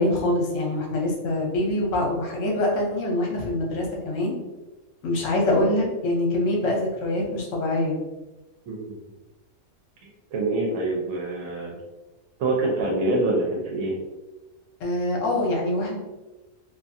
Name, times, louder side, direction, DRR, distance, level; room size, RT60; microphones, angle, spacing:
voice 1, 0.0-4.3 5.0-8.0 14.8-16.0, left 1 dB, 70° left, -1 dB, 1.1 m, -24 dB
voice 2, 8.7-9.0 10.3-11.8 12.4-14.0, right 2 dB, 80° right, -2 dB, 1.0 m, -25 dB
2.6 x 2.4 x 2.5 m, 1.1 s
omnidirectional pair, 1.5 m